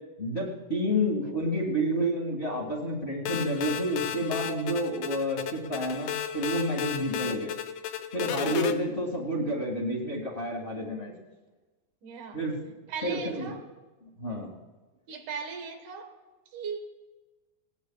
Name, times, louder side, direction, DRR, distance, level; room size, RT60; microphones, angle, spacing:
voice 1, 0.2-7.5 8.1-11.1 12.3-12.6 13.0-13.5 14.2-14.5, equal, 25° left, -2 dB, 1.8 m, -29 dB
sound 1, 3.2-8.7, left 10 dB, 75° left, 1.7 m, -33 dB
voice 2, 7.1-7.5 12.0-12.4 12.9-13.6 15.1-16.1 16.5-16.8, right 5 dB, 75° right, 4 dB, 2.9 m, -38 dB
21.0 x 18.0 x 2.3 m, 1.2 s
omnidirectional pair, 3.6 m